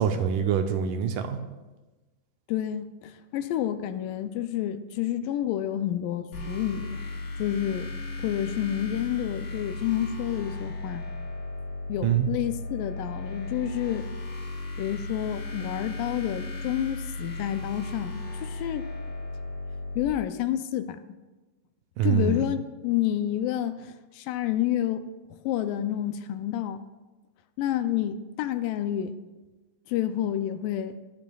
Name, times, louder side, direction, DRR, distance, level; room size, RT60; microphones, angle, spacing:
voice 1, 0.0-1.4 12.0-12.3 22.0-22.4, right 8 dB, 75° right, 6 dB, 2.1 m, -25 dB
voice 2, 2.5-7.0 7.4-7.9 8.2-11.1 11.9-14.1 14.8-18.9 20.0-21.0 22.0-25.1 25.4-26.8 27.6-29.1 29.9-31.0, left 11 dB, 80° left, 10 dB, 2.1 m, -29 dB
sound 1, 6.3-20.0, left 2 dB, 50° left, 3.4 m, -36 dB
17.5 x 12.0 x 2.3 m, 1.2 s
omnidirectional pair, 4.1 m